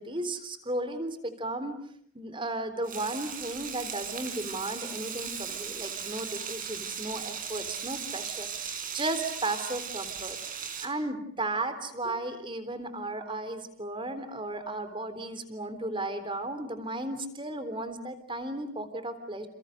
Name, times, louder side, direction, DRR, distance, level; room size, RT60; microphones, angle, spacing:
voice 1, 0.0-1.8 2.1-19.5, right 2 dB, 25° right, 10 dB, 3.7 m, -35 dB
Frying (food), 2.8-10.9, right 7 dB, 45° right, 4.8 m, -37 dB
29.5 x 29.5 x 6.6 m, 0.64 s
head